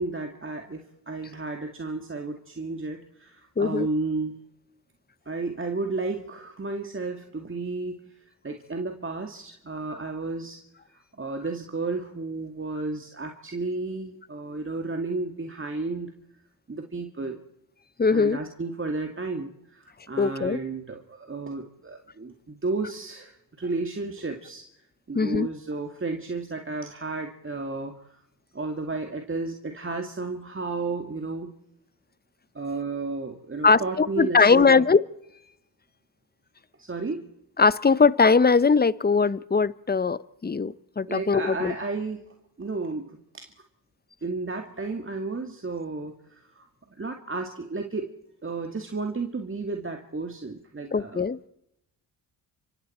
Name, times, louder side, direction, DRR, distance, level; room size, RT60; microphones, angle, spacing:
voice 1, 0.0-4.5 5.3-8.0 8.4-10.6 10.9-16.1 16.7-17.4 18.1-24.7 25.1-28.2 28.5-31.5 32.5-34.8 36.8-37.3 41.1-42.2 42.6-43.5 44.2-46.7 47.0-48.1 48.4-51.2, right 3 dB, 30° right, 4 dB, 2.2 m, -32 dB
voice 2, 3.6-3.9 18.0-18.4 20.2-20.6 25.1-25.5 33.6-35.0 37.6-41.7 50.9-51.4, left 4 dB, 20° left, 18 dB, 0.9 m, -20 dB
29.0 x 24.5 x 4.4 m, 0.83 s
supercardioid pair, 50°, 43 cm